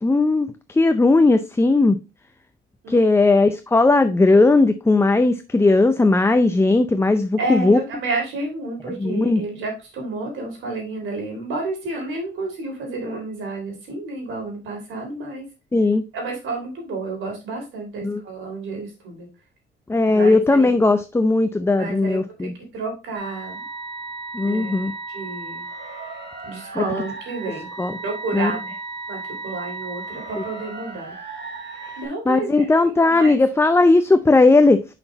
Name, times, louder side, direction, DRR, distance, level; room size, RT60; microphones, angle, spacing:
voice 1, 0.0-2.0 2.9-7.8 9.0-9.4 15.7-16.0 18.0-18.2 19.9-22.5 24.3-24.9 26.7-26.8 27.8-28.0 28.3-28.5 30.3-30.4 31.8-31.9 32.3-34.8, left 3 dB, 15° left, 0.5 m, -17 dB
voice 2, 7.4-15.4 16.1-19.3 20.1-20.8 21.8-23.6 24.4-25.6 26.5-27.7 28.0-28.8 29.1-31.1 32.0-33.4, right 3 dB, 80° right, 3.5 m, -30 dB
sound 1, 23.1-32.1, right 3 dB, 60° right, 2.4 m, -35 dB
5.9 x 5.8 x 3.9 m
cardioid pair, 90°, 20 cm